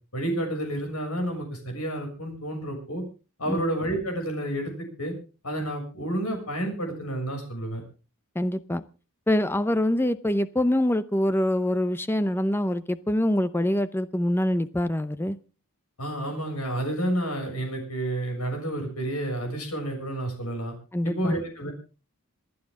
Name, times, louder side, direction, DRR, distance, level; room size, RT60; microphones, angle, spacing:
voice 1, 0.1-3.0 3.4-4.7 5.0-5.1 5.4-7.8 16.0-20.7 21.0-21.7, right 1 dB, 80° left, 3 dB, 6.7 m, -30 dB
voice 2, 8.3-8.8 9.3-15.4 20.9-21.4, left 1 dB, 10° left, 14 dB, 0.6 m, -25 dB
27.5 x 9.6 x 3.7 m, 0.34 s
head